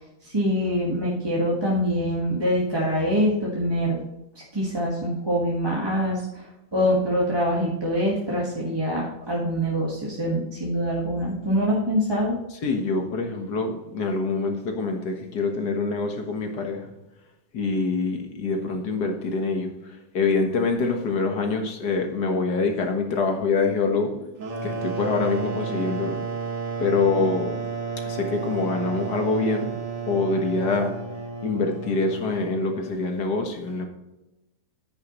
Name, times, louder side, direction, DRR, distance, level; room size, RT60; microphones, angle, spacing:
voice 1, 0.2-4.0 4.5-12.4, equal, 15° right, -4 dB, 1.3 m, -24 dB
voice 2, 12.6-16.9 17.5-19.7 20.1-24.3 24.6-26.2 26.8-27.6 28.0-29.8 30.1-30.9 31.4-33.9, left 3 dB, 55° left, 4 dB, 1.9 m, -25 dB
sound 1, 24.4-32.9, right 5 dB, 45° right, 1.5 m, -32 dB
9.8 x 9.6 x 3.1 m, 0.96 s
omnidirectional pair, 2.2 m